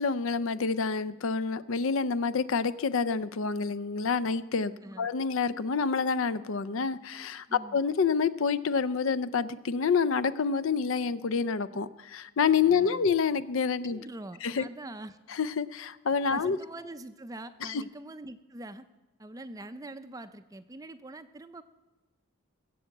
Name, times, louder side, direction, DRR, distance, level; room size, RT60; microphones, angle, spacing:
voice 1, 0.0-4.7 5.0-14.0 14.4-14.6 15.3-16.6 17.6-17.8, left 5 dB, 65° left, 15 dB, 0.5 m, -28 dB
voice 2, 7.5-7.8 12.7-13.1 13.9-15.2 16.3-18.8 19.2-21.6, right 2 dB, 15° right, 11 dB, 0.4 m, -44 dB
19.5 x 7.8 x 7.7 m, 1.1 s
head